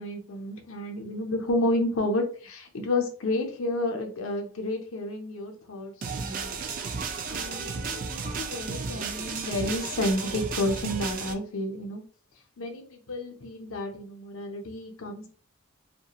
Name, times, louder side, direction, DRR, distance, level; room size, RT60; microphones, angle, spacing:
voice 1, 0.0-6.6 7.3-12.0 12.6-15.3, left 1 dB, 85° left, 4 dB, 0.6 m, -31 dB
sound 1, 6.0-11.3, right 5 dB, 40° right, 0.3 m, -33 dB
2.3 x 2.2 x 2.8 m, 0.43 s
head